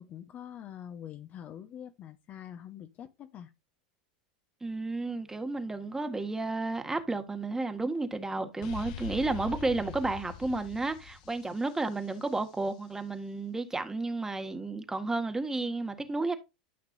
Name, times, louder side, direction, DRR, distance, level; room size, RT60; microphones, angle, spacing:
voice 1, 0.0-3.5, left 10 dB, 40° left, 1.2 m, -45 dB
voice 2, 4.6-16.3, right 3 dB, 10° right, 1.8 m, -32 dB
sound 1, 8.6-12.4, left 8 dB, 65° left, 1.1 m, -43 dB
12.5 x 5.9 x 2.7 m
hypercardioid pair, 100°, 4 cm